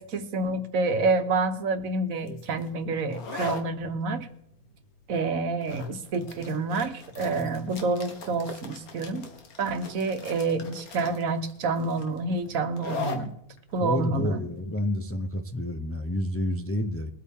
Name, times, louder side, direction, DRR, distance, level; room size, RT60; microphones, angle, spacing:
voice 1, 0.0-4.3 5.1-9.3 9.6-13.3 13.7-14.4, right 3 dB, 70° right, 8 dB, 1.4 m, -28 dB
sound 1, 2.2-15.6, left 4 dB, 80° left, 1.8 m, -41 dB
voice 2, 13.8-17.1, left 1 dB, 20° left, 6 dB, 0.3 m, -29 dB
22.0 x 8.5 x 3.6 m, 0.75 s
omnidirectional pair, 1.5 m